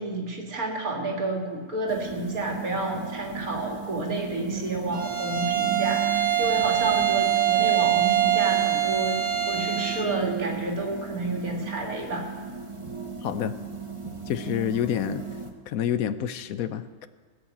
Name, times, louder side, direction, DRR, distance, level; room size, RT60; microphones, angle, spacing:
voice 1, 0.0-9.2 9.5-12.3, right 2 dB, 70° right, 1 dB, 2.6 m, -30 dB
sound 1, 1.9-15.5, right 5 dB, 20° right, 1.2 m, -36 dB
Bowed string instrument, 4.9-10.2, right 11 dB, 90° right, 2.5 m, -24 dB
voice 2, 13.2-13.6 14.3-15.2 15.7-17.1, left 10 dB, 75° left, 12 dB, 1.1 m, -28 dB
18.5 x 6.3 x 8.4 m, 1.4 s
omnidirectional pair, 1.6 m